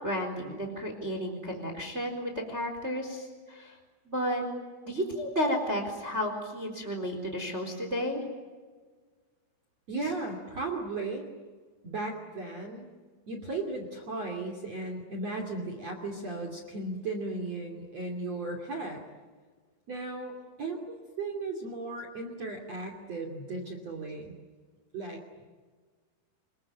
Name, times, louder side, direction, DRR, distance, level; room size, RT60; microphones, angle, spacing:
voice 1, 0.0-3.8 4.1-4.4 4.9-8.2 10.0-10.1 20.4-20.5, equal, 15° right, 4 dB, 3.7 m, -32 dB
voice 2, 9.9-11.3 11.8-12.9 13.3-19.0 19.9-20.3 20.6-24.3 24.9-25.4, right 3 dB, 40° right, 3 dB, 3.1 m, -36 dB
27.0 x 22.5 x 9.1 m, 1.5 s
omnidirectional pair, 5.9 m